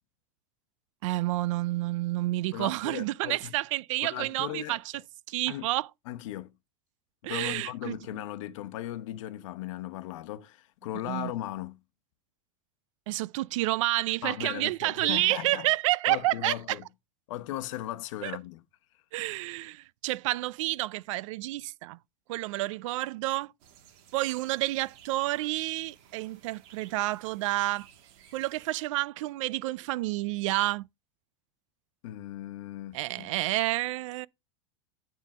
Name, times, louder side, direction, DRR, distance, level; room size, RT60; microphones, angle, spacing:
voice 1, 1.0-4.9 5.3-5.9 7.2-8.0 11.1-11.3 13.1-16.8 18.2-18.3 19.1-22.0 22.3-23.5 24.1-27.9 28.3-30.9 32.9-34.3, right 18 dB, 75° right, 0.4 m, -29 dB
voice 2, 2.5-3.5 4.0-4.8 5.5-5.7 6.1-6.5 7.3-11.8 14.2-15.7 16.1-16.8 17.3-18.6 32.0-33.3, left 14 dB, 70° left, 0.9 m, -37 dB
sound 1, 23.6-28.7, right 9 dB, 55° right, 1.5 m, -57 dB
10.5 x 3.7 x 4.9 m
supercardioid pair, 145°, 17 cm